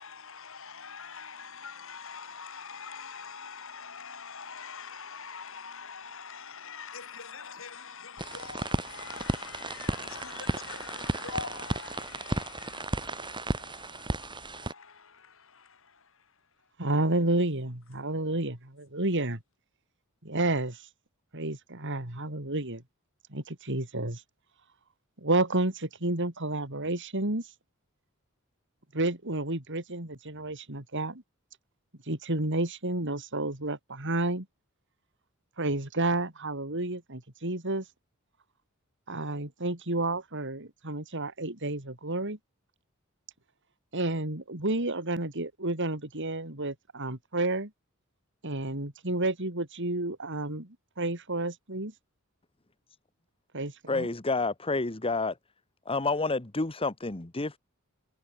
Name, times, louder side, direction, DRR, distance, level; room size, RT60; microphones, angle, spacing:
voice 1, 0.0-16.3, left 5 dB, 65° left, 7.9 m, -44 dB
sound 1, 8.2-14.7, right 1 dB, 20° right, 3.7 m, -34 dB
voice 2, 16.8-19.4 20.2-20.8 21.3-22.8 23.3-24.2 25.2-27.5 28.9-31.2 32.1-34.5 35.6-37.8 39.1-42.4 43.9-47.7 48.4-51.9 53.5-54.1, right 2 dB, 60° right, 4.1 m, -30 dB
voice 3, 53.9-55.3 55.9-57.6, left 3 dB, 25° left, 1.3 m, -29 dB
head